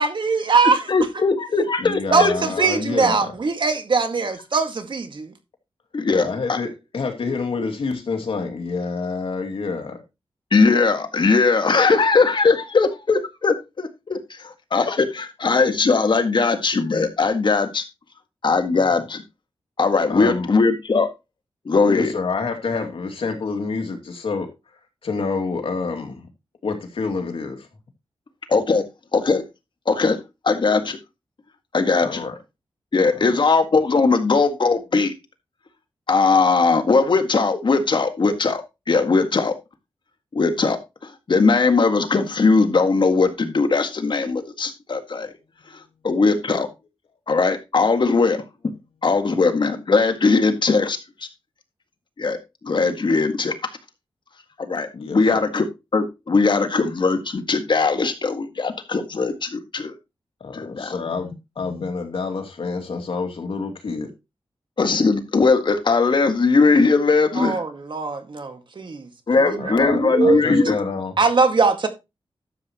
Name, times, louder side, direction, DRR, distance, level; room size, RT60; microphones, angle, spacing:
voice 1, 0.0-0.9 1.2-1.3 2.1-5.3 67.4-69.1 69.4-70.8 71.2-71.9, right 4 dB, 60° right, 1.9 m, -21 dB
voice 2, 0.9-2.3 5.9-6.6 10.5-14.2 14.7-17.8 18.4-19.2 19.8-21.1 21.7-22.1 28.5-28.9 29.1-29.4 29.9-30.2 30.4-31.0 31.7-32.2 32.9-35.1 36.1-38.6 38.9-39.5 40.3-45.3 46.0-46.7 47.3-48.4 49.0-51.0 52.2-52.4 52.6-53.5 54.6-55.7 55.9-59.9 60.5-60.9 64.8-67.6 69.3-70.8, left 4 dB, 55° left, 1.8 m, -19 dB
voice 3, 1.8-3.3 6.1-10.0 18.8-19.0 20.1-20.5 21.9-24.5 25.0-26.2 26.6-27.7 32.0-32.4 33.1-33.3 54.9-55.4 60.4-64.1 69.6-71.1, left 4 dB, 80° left, 2.4 m, -28 dB
12.0 x 7.8 x 3.0 m
wide cardioid pair, 90°, 9 cm